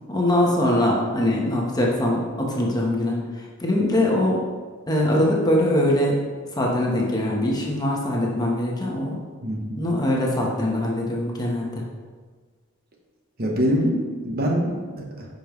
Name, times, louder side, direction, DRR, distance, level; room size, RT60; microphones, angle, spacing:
voice 1, 0.1-4.4 4.9-6.2 6.5-9.2 9.8-11.9, left 1 dB, 20° left, -2 dB, 1.0 m, -22 dB
voice 2, 9.4-9.8 13.4-15.3, equal, 45° right, 0 dB, 1.0 m, -24 dB
9.9 x 5.2 x 3.1 m, 1.5 s
head